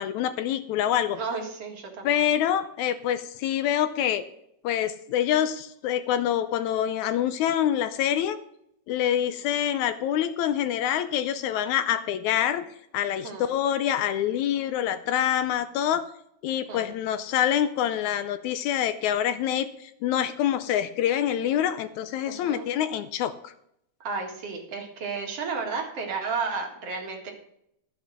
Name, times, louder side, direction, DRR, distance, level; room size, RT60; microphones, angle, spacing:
voice 1, 0.0-1.2 2.0-4.2 4.6-8.4 8.9-12.6 12.9-16.0 16.4-23.5, left 10 dB, 80° left, 12 dB, 2.0 m, -26 dB
voice 2, 1.2-2.2 13.2-13.5 16.7-16.9 22.3-22.7 24.0-27.3, right 4 dB, 55° right, 1 dB, 2.9 m, -32 dB
12.5 x 7.4 x 6.3 m, 0.74 s
omnidirectional pair, 3.5 m